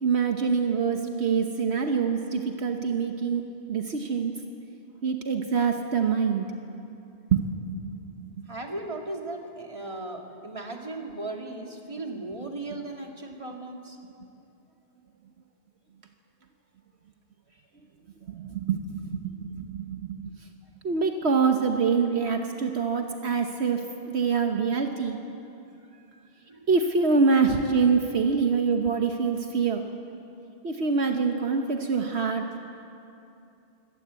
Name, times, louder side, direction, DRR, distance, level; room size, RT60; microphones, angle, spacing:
voice 1, 0.0-3.4 3.7-4.3 5.0-6.5 7.3-7.5 7.9-8.0 18.3-20.2 20.8-25.2 26.7-29.8 30.6-32.6, right 5 dB, 70° right, 4 dB, 1.3 m, -25 dB
voice 2, 8.5-14.0 25.9-26.0 26.5-26.7, right 2 dB, 30° right, 1 dB, 2.3 m, -37 dB
24.0 x 18.0 x 8.2 m, 2.7 s
omnidirectional pair, 1.1 m